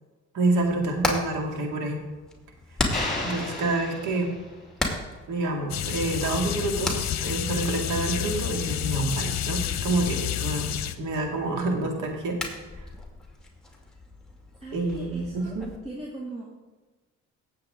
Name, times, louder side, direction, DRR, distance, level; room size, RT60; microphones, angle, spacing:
voice 1, 0.3-2.0 3.2-4.3 5.3-12.4 12.8-12.9 14.7-15.7, right 2 dB, 85° right, 2 dB, 2.3 m, -28 dB
Hammer, 0.5-15.8, left 2 dB, ahead, 2.5 m, -37 dB
sound 1, 2.9-4.7, left 2 dB, 25° left, 4.3 m, -33 dB
sound 2, 5.7-10.9, left 11 dB, 60° left, 0.8 m, -29 dB
voice 2, 14.6-15.5 15.8-16.4, right 1 dB, 20° right, -5 dB, 2.4 m, -39 dB
17.5 x 7.7 x 3.8 m, 1.2 s
cardioid pair, 90°, 30 cm